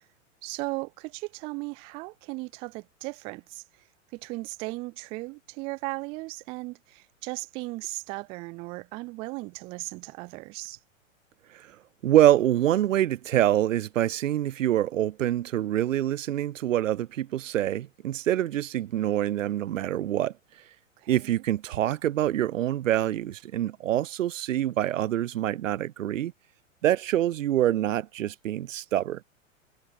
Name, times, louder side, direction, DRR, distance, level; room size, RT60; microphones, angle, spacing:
voice 1, 0.4-3.6 4.1-10.8 21.0-21.4, right 25 dB, 15° right, 0.3 m, -37 dB
voice 2, 12.0-20.3 21.1-26.3 26.8-29.2, right 12 dB, 75° right, 0.5 m, -25 dB
figure-of-eight pair, 100°, 39 cm